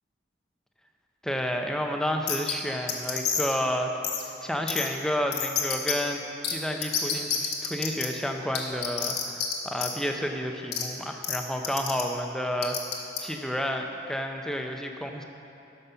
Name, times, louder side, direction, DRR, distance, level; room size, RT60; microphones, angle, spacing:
voice 1, 1.2-3.9 4.4-6.2 6.5-12.8 13.2-15.2, equal, 5° left, 3 dB, 0.6 m, -30 dB
sound 1, 2.3-2.5 2.9-3.5 4.0-4.2 4.7-4.9 5.3-5.9 6.4-6.5 6.8-8.1 8.5-9.5 9.8-9.9 10.7-10.8 11.2-11.4 11.6-12.0 12.6-13.2, left 8 dB, 60° left, 1.2 m, -28 dB
12.5 x 5.4 x 5.6 m, 2.9 s
head